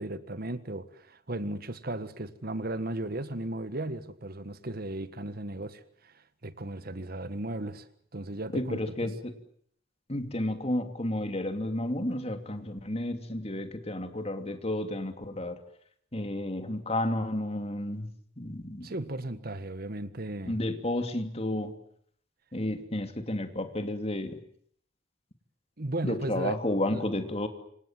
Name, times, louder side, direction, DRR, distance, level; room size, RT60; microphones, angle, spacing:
voice 1, 0.0-9.1 18.8-20.6 25.8-26.6 26.9-27.0, right 1 dB, 50° right, 1.6 m, -36 dB
voice 2, 8.5-9.3 10.1-15.6 16.1-18.1 18.4-18.9 20.5-21.7 22.5-24.4 26.0-27.5, left 1 dB, 35° left, 2.8 m, -31 dB
27.5 x 26.0 x 7.6 m
head